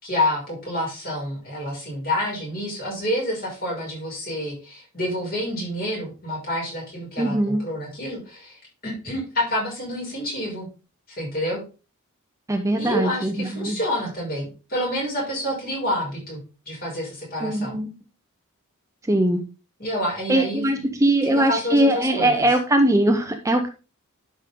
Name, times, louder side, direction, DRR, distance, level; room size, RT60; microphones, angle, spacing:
voice 1, 0.0-10.7 11.2-11.6 12.8-16.4 16.7-17.8 19.8-20.8 21.2-22.5, equal, 45° left, -4 dB, 5.9 m, -28 dB
voice 2, 7.2-7.6 12.5-13.8 17.4-17.9 19.0-19.4 20.3-23.7, right 1 dB, 15° right, 6 dB, 0.7 m, -21 dB
11.5 x 5.3 x 3.7 m, 0.32 s
head